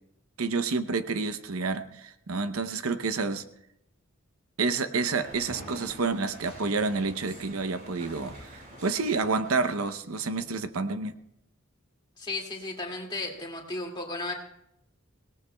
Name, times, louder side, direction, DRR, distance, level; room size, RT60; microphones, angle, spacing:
voice 1, 0.4-3.4 4.6-11.1, right 4 dB, 80° right, 11 dB, 0.8 m, -29 dB
sound 1, 4.9-9.9, equal, 40° right, 6.3 m, -46 dB
voice 2, 12.2-14.3, left 2 dB, 20° left, 0 dB, 2.2 m, -34 dB
24.5 x 18.0 x 2.3 m, 0.80 s
head